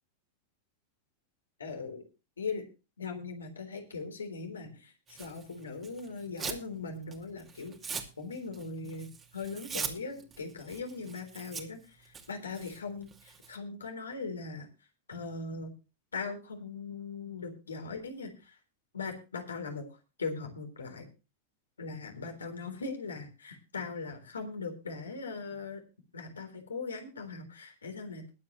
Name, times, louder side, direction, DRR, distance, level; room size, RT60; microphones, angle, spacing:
voice 1, 1.6-2.0 2.4-2.6 3.0-14.7 15.1-15.7 16.1-18.6 18.9-19.8 20.2-21.1 21.8-25.8 26.1-28.3, left 4 dB, 70° left, 5 dB, 3.5 m, -40 dB
Tearing, 5.1-6.7 7.0-13.6, right 6 dB, 25° right, 2.5 m, -42 dB
21.5 x 8.4 x 3.1 m, 0.31 s
figure-of-eight pair, 90°, 0 cm